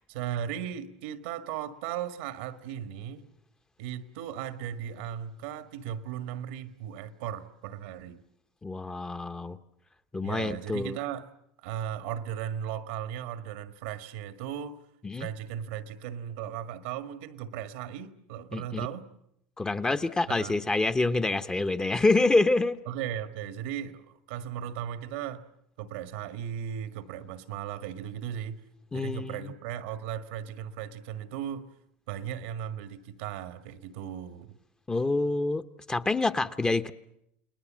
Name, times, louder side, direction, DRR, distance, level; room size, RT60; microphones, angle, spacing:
voice 1, 0.1-3.3 3.8-8.2 10.2-11.3 11.6-14.8 15.2-19.1 20.3-20.5 22.9-25.4 25.8-28.6 28.9-31.7 32.1-34.6, right 9 dB, 80° right, 1.7 m, -36 dB
voice 2, 8.6-9.6 10.1-11.0 15.0-15.3 18.5-18.9 19.6-22.8 28.9-29.5 34.9-35.6 35.9-36.9, left 2 dB, 15° left, 1.0 m, -27 dB
30.0 x 20.0 x 7.6 m
supercardioid pair, 110°, 6 cm